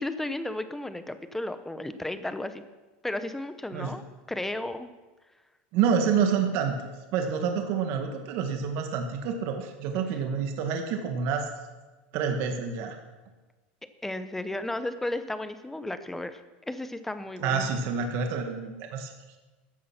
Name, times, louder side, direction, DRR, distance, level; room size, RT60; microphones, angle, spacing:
voice 1, 0.0-2.6 3.0-4.9 14.0-17.7, left 1 dB, 5° left, 11 dB, 0.9 m, -34 dB
voice 2, 5.7-6.8 7.1-11.5 12.1-13.0 17.4-19.1, right 6 dB, 55° right, 5 dB, 1.8 m, -28 dB
14.5 x 10.0 x 6.0 m, 1.2 s
supercardioid pair, 135°, 5 cm